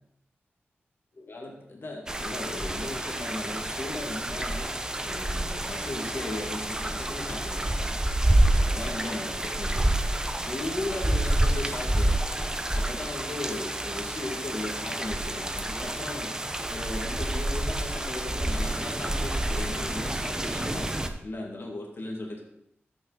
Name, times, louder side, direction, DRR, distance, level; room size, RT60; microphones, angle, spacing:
voice 1, 1.2-8.0 8.2-9.9 10.3-12.2 12.7-16.3 16.7-22.4, left 2 dB, 60° left, -1 dB, 2.5 m, -37 dB
sound 1, 2.1-21.1, right 1 dB, 15° right, 0.8 m, -28 dB
14.0 x 6.3 x 4.2 m, 0.77 s
wide cardioid pair, 75°, 4 cm